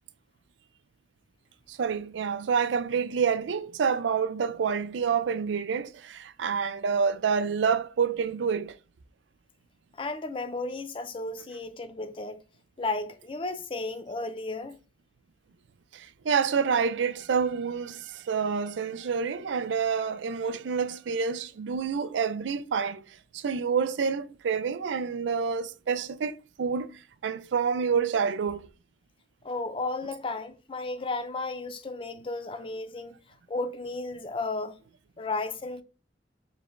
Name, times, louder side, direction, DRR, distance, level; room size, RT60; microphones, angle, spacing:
voice 1, 1.7-8.8 15.9-28.7, right 6 dB, 90° right, 0.4 m, -28 dB
voice 2, 10.0-12.4 12.8-14.8 29.4-33.2 33.5-34.8 35.2-35.8, left 3 dB, 30° left, 0.4 m, -33 dB
4.8 x 3.3 x 2.5 m
head